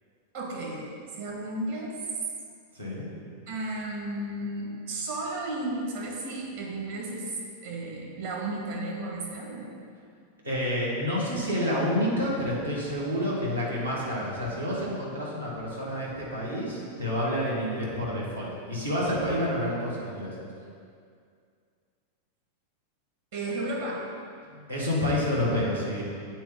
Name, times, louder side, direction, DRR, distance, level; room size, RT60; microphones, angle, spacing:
voice 1, 0.3-0.9 1.2-2.0 3.5-7.4 7.6-9.7 23.3-24.0 24.4-24.6, right 2 dB, 55° right, -3 dB, 1.7 m, -33 dB
voice 2, 2.7-3.1 10.4-20.3 24.7-26.1, left 1 dB, 80° right, -6 dB, 1.5 m, -29 dB
8.1 x 4.3 x 3.8 m, 2.3 s
figure-of-eight pair, 90°, 0 cm